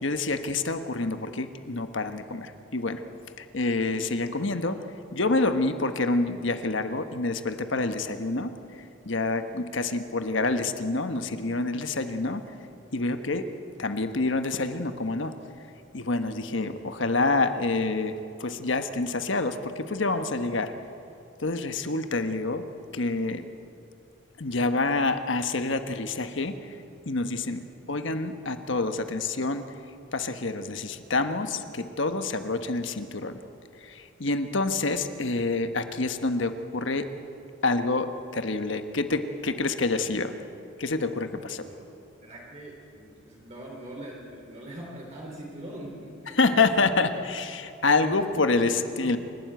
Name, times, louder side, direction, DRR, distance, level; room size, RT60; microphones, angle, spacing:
voice 1, 0.0-3.0 3.4-4.8 5.1-8.5 9.1-12.4 12.9-13.5 13.8-15.3 15.9-20.7 21.4-22.6 22.9-23.4 24.4-26.6 27.1-27.6 27.9-29.6 30.1-33.4 33.8-37.1 37.6-40.3 40.8-41.7 46.3-48.7 49.0-49.2, left 3 dB, 70° left, 8 dB, 1.3 m, -27 dB
voice 2, 42.2-46.9 48.0-49.2, right 1 dB, 35° right, -3 dB, 3.3 m, -41 dB
28.0 x 12.5 x 9.3 m, 2.6 s
head